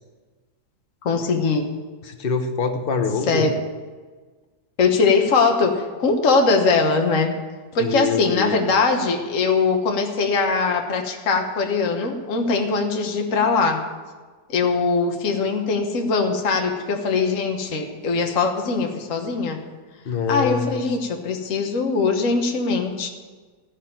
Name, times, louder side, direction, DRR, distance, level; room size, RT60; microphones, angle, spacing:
voice 1, 1.0-1.7 3.3-3.6 4.8-7.3 7.7-13.8 14.5-19.6 20.3-23.1, left 4 dB, 50° left, 3 dB, 1.5 m, -21 dB
voice 2, 2.0-3.5 7.8-8.6 20.0-20.8, left 5 dB, 35° left, 5 dB, 1.1 m, -25 dB
14.5 x 6.6 x 8.9 m, 1.4 s
omnidirectional pair, 1.8 m